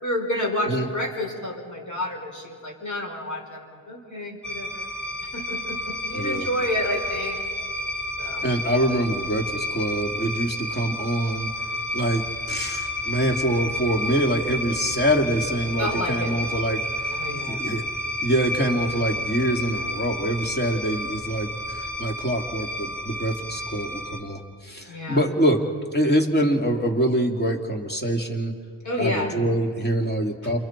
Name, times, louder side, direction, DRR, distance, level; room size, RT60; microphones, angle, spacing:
voice 1, 0.0-4.8 5.3-7.4 8.2-8.5 15.8-16.3 17.1-17.6 24.9-25.2 28.8-29.3 30.4-30.5, left 1 dB, 35° left, -1 dB, 5.9 m, -29 dB
sound 1, 4.4-24.2, left 1 dB, ahead, 5.0 m, -31 dB
voice 2, 6.1-6.5 8.4-11.5 11.9-16.8 17.5-17.8 18.2-25.6 25.9-28.5 29.0-30.6, right 1 dB, 20° left, 2 dB, 2.7 m, -25 dB
28.0 x 24.5 x 4.6 m, 2.2 s
cardioid pair, 65°, 49 cm